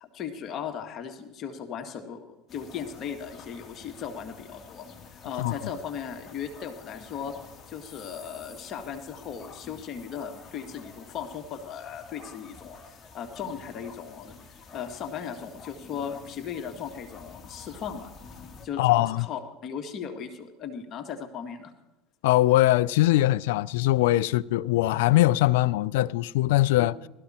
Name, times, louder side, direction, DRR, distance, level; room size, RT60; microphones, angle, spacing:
voice 1, 0.0-4.9 5.2-7.3 7.7-14.3 14.7-18.1 18.6-21.7 26.8-26.9, left 7 dB, 45° left, 1.7 m, -37 dB
sound 1, 2.5-18.7, left 5 dB, 25° left, 2.3 m, -49 dB
voice 2, 18.8-19.3 22.2-26.9, left 16 dB, 75° left, 0.4 m, -22 dB
18.5 x 13.5 x 4.3 m
hypercardioid pair, 95°, 0 cm